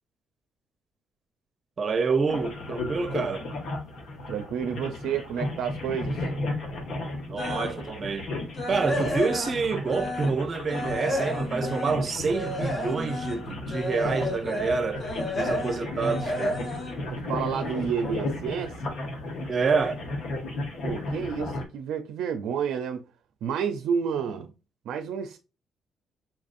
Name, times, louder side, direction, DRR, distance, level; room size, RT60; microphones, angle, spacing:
voice 1, 1.8-3.4 7.3-8.3 8.7-15.0 15.4-16.6 19.5-20.0, right 4 dB, 40° right, 0.6 m, -27 dB
sound 1, 2.3-21.6, left 2 dB, 70° left, 1.2 m, -34 dB
voice 2, 4.3-6.3 17.1-18.8 20.8-23.0 23.4-24.5 24.9-25.4, right 7 dB, 85° right, 0.4 m, -30 dB
sound 2, 7.3-7.8 8.2-10.4 10.7-17.9 18.3-18.5 19.0-19.1 19.5-19.6, left 1 dB, 40° left, 1.7 m, -32 dB
5.6 x 2.5 x 2.5 m
cardioid pair, 90°, 0 cm